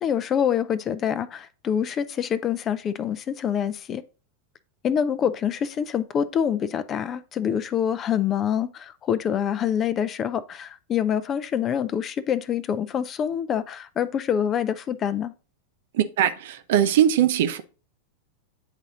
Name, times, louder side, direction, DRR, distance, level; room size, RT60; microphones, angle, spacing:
voice 1, 0.0-4.0 4.8-15.3, left 8 dB, 30° left, 0.5 m, -26 dB
voice 2, 15.9-17.6, right 10 dB, 55° right, 0.7 m, -21 dB
9.0 x 4.1 x 3.7 m
figure-of-eight pair, 90°, 0 cm